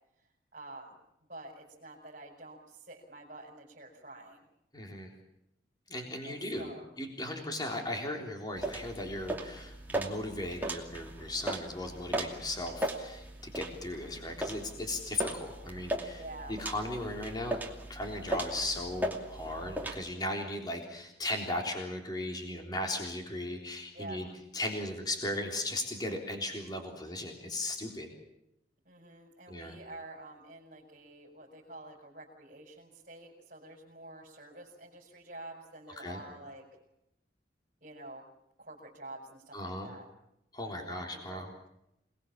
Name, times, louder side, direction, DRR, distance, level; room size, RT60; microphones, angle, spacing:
voice 1, 0.2-1.0 1.3-4.4 6.2-6.8 16.2-16.6 23.9-24.2 28.8-36.7 37.8-38.2 38.6-40.0 40.6-41.7, right 2 dB, 45° right, -4 dB, 5.4 m, -48 dB
voice 2, 4.7-5.1 5.9-6.7 7.0-16.2 16.5-17.6 17.9-24.3 24.5-28.1 29.5-29.8 36.0-36.2 39.5-40.0 40.5-41.5, left 1 dB, 20° left, 2 dB, 3.6 m, -37 dB
sound 1, 8.6-20.0, right 1 dB, 10° right, 2.6 m, -38 dB
28.0 x 20.0 x 7.3 m, 0.83 s
head